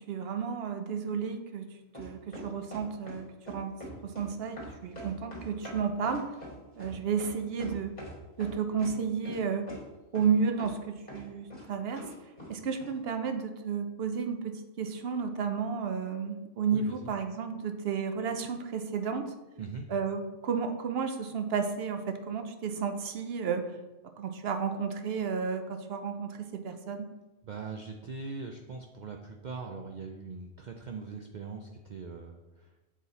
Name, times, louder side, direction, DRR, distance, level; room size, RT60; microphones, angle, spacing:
voice 1, 0.0-1.7 2.0-3.7 4.0-6.3 6.7-7.9 8.4-9.7 10.1-12.1 12.5-19.3 19.9-23.7 24.2-27.1, right 6 dB, 60° right, 7 dB, 0.7 m, -32 dB
sound 1, 1.9-3.2 3.5-4.3 4.6-8.1 8.4-8.9 9.2-9.4 9.7-9.8 10.1-10.3 10.6-10.8 11.1-11.6 12.0-12.5 12.8-12.9, equal, 30° left, 2.2 m, -44 dB
voice 2, 16.7-17.1 19.6-19.9 27.4-32.7, right 4 dB, 90° right, 3 dB, 0.4 m, -41 dB
7.3 x 4.1 x 4.0 m, 1.1 s
omnidirectional pair, 1.4 m